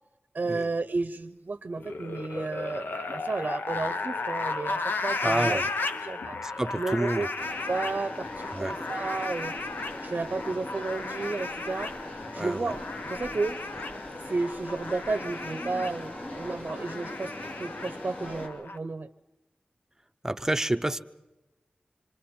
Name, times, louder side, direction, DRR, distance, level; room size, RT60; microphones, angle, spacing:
voice 1, 0.3-5.6 6.0-6.4 6.8-7.3 7.7-9.5 10.0-11.9 12.3-13.6 14.3-17.3 17.6-19.1, right 3 dB, 55° right, 10 dB, 0.6 m, -32 dB
sound 1, 1.8-18.8, left 3 dB, 80° left, 0.8 m, -35 dB
voice 2, 5.2-5.7 6.4-7.3 8.5-8.8 12.3-12.7 20.2-21.0, right 1 dB, 15° right, 10 dB, 0.7 m, -29 dB
sound 2, 7.4-18.5, left 1 dB, 45° left, 2.7 m, -41 dB
26.0 x 26.0 x 4.4 m, 1.0 s
wide cardioid pair, 80°, 3 cm